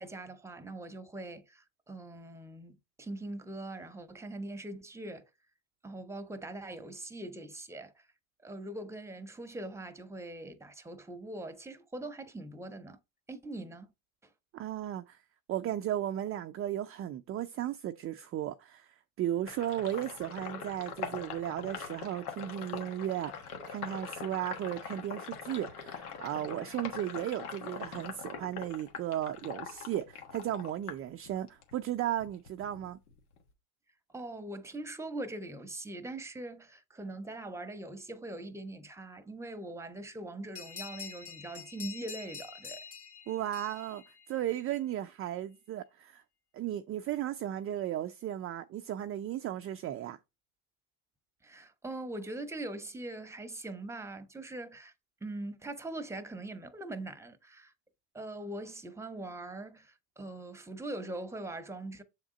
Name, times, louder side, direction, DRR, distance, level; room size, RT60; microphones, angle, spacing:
voice 1, 0.0-5.2 5.8-8.1 8.4-13.0 13.3-13.9 34.1-42.8 51.4-54.9 55.2-57.7 58.1-62.0, right 2 dB, 5° right, 0.9 m, -42 dB
voice 2, 14.5-15.2 15.5-33.0 43.3-46.2 46.5-50.2, right 12 dB, 30° right, 0.4 m, -35 dB
Sink (filling or washing), 19.5-31.7 32.1-33.5, left 6 dB, 85° left, 1.4 m, -43 dB
sound 1, 40.5-44.8, left 6 dB, 35° left, 1.8 m, -46 dB
7.2 x 3.6 x 3.9 m
hypercardioid pair, 85°, 43 cm